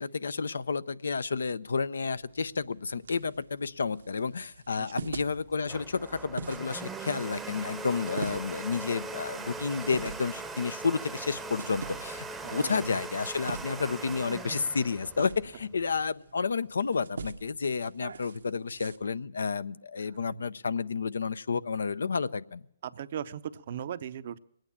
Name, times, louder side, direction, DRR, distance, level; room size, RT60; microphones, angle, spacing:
voice 1, 0.0-22.6, left 5 dB, 80° left, 16 dB, 0.5 m, -31 dB
sound 1, 2.1-19.0, right 4 dB, 75° right, 1.0 m, -45 dB
voice 2, 4.8-5.1 12.4-12.9 20.3-20.5 22.8-24.4, right 9 dB, 55° right, 14 dB, 0.6 m, -38 dB
Domestic sounds home sounds, 5.3-16.0, right 3 dB, 10° right, 0.8 m, -40 dB
20.5 x 9.0 x 7.1 m, 0.73 s
hypercardioid pair, 135°, 0 cm